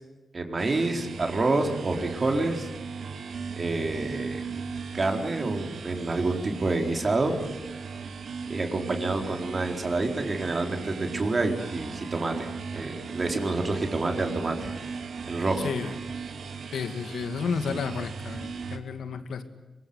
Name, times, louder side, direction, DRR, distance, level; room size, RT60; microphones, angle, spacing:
voice 1, 0.3-2.7 3.6-4.4 4.9-7.4 8.5-14.7 15.3-15.7, right 2 dB, 40° right, 3 dB, 4.2 m, -28 dB
sound 1, 0.6-18.8, right 5 dB, 70° right, 2.5 m, -37 dB
voice 2, 15.6-15.9 16.7-19.4, left 6 dB, 85° left, 9 dB, 2.3 m, -32 dB
24.0 x 23.0 x 9.6 m, 1.1 s
cardioid pair, 85°, 0 cm